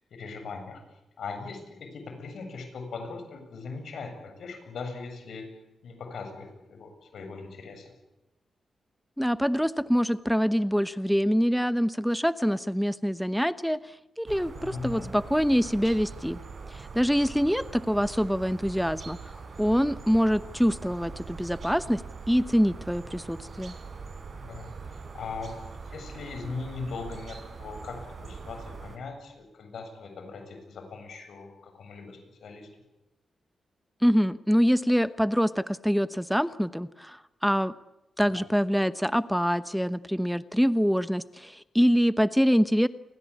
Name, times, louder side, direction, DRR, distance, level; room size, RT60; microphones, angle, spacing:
voice 1, 0.1-0.8 1.2-5.5 5.8-7.9 14.5-15.1 24.4-25.6 25.8-32.7 38.3-38.4, left 4 dB, 75° left, 6 dB, 7.5 m, -40 dB
voice 2, 9.2-16.4 16.7-22.0 22.3-23.8 34.0-37.7 38.2-42.9, equal, ahead, 14 dB, 1.0 m, -25 dB
sound 1, 14.3-29.0, right 4 dB, 60° right, 5.0 m, -42 dB
29.5 x 22.5 x 8.6 m, 0.95 s
supercardioid pair, 50°, 0 cm